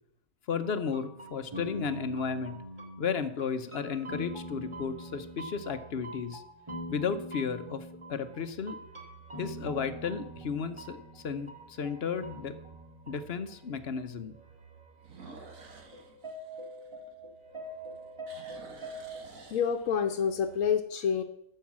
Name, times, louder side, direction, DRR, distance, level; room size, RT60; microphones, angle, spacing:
voice 1, 0.5-2.6 3.0-6.4 6.9-8.8 9.3-12.6 13.1-14.4, left 6 dB, 55° left, 10 dB, 1.0 m, -34 dB
sound 1, 0.6-13.7 14.0-14.1 15.6-15.7 15.9-19.2, equal, 20° right, 1.9 m, -44 dB
sound 2, 1.3-2.0 2.7-2.8 8.0-8.5 8.9-9.0 9.6-9.7 9.9-10.0 11.6-11.7 15.0-17.5 17.8-20.2, right 3 dB, 85° right, 2.0 m, -52 dB
sound 3, 1.6-3.2 3.5-7.1 7.9-19.3 19.6-20.6, right 7 dB, 40° right, 1.3 m, -58 dB
voice 2, 19.5-21.2, left 7 dB, 80° left, 4 dB, 1.1 m, -28 dB
13.0 x 5.6 x 7.4 m, 0.79 s
omnidirectional pair, 1.4 m